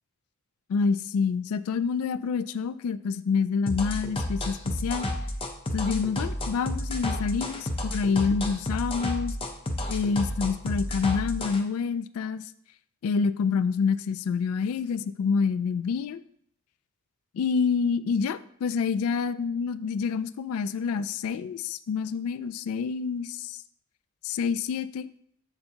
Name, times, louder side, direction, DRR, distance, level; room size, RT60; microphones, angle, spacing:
voice 1, 0.7-5.1 5.7-9.4 9.9-12.4 13.0-16.2 17.3-23.6 24.2-25.1, left 5 dB, 75° left, 15 dB, 0.3 m, -27 dB
sound 1, 3.7-11.6, left 1 dB, 25° left, 0.6 m, -31 dB
6.9 x 6.6 x 2.8 m, 0.68 s
head